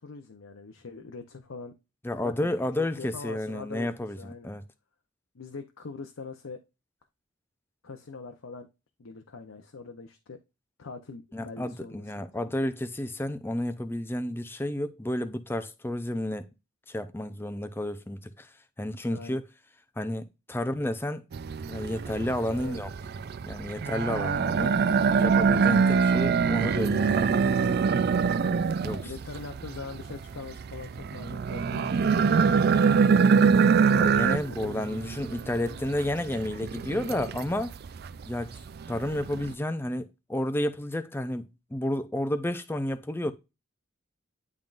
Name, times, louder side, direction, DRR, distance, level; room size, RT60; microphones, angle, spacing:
voice 1, 0.0-1.7 2.2-4.5 5.3-6.6 7.8-8.7 9.0-10.4 10.8-12.5 19.1-19.4 22.5-22.8 24.9-25.1 28.9-33.6 34.5-35.0, left 4 dB, 80° left, 0.7 m, -43 dB
voice 2, 2.0-4.6 11.3-16.5 16.9-18.5 18.8-19.5 20.0-21.2 21.7-22.9 23.5-24.8 25.2-27.4 28.8-29.1 34.0-37.7 38.3-38.6 38.9-43.3, left 1 dB, 10° left, 0.5 m, -31 dB
sound 1, 21.3-39.5, right 5 dB, 50° right, 0.3 m, -25 dB
10.5 x 3.7 x 2.5 m
head